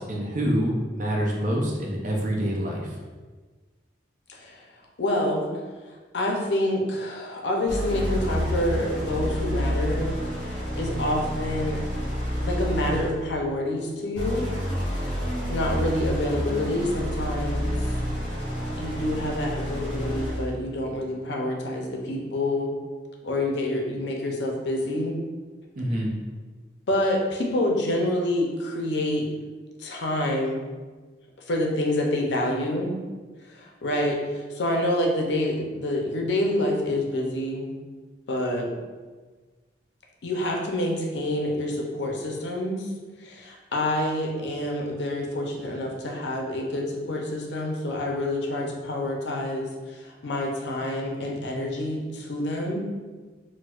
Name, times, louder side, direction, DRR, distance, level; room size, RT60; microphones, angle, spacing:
voice 1, 0.1-2.9 25.8-26.1, equal, 45° right, -2 dB, 0.6 m, -26 dB
voice 2, 4.3-4.6 5.0-5.5 5.9-10.1 10.8-11.8 12.4-14.5 15.0-15.2 15.5-17.9 18.8-22.7 23.2-25.1 25.9-26.0 26.9-29.3 29.8-30.6 31.5-33.0 33.4-37.7 38.3-38.7 40.2-42.9 43.2-52.8, left 1 dB, 75° left, 0 dB, 0.6 m, -27 dB
sound 1, 7.7-13.3 14.1-20.6, equal, 10° left, 1.3 m, -29 dB
4.4 x 2.1 x 2.4 m, 1.4 s
head